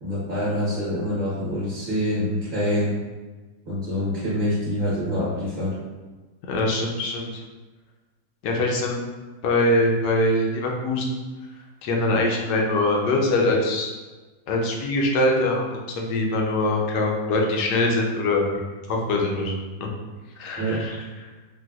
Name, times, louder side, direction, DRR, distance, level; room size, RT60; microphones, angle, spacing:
voice 1, 0.0-3.0 3.7-5.7 20.6-20.8, equal, 35° right, -10 dB, 0.8 m, -25 dB
voice 2, 6.5-7.3 8.4-9.1 9.4-11.1 11.8-13.9 14.5-18.5 18.9-19.9 20.4-21.0, left 2 dB, 80° left, 0 dB, 1.2 m, -23 dB
4.1 x 2.2 x 2.3 m, 1.3 s
omnidirectional pair, 1.8 m